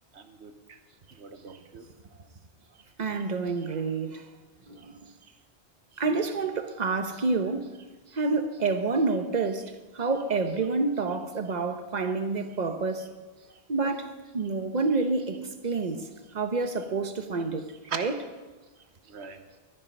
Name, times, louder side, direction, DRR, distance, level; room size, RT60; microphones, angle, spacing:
voice 1, 0.1-0.8 1.2-1.9 17.9-18.0 19.1-19.6, right 6 dB, 85° right, 1.2 m, -40 dB
voice 2, 3.0-4.2 4.7-5.1 6.0-7.6 8.1-13.1 13.7-16.0 16.3-18.1, right 3 dB, 45° right, 1.0 m, -28 dB
13.0 x 11.0 x 5.4 m
omnidirectional pair, 1.1 m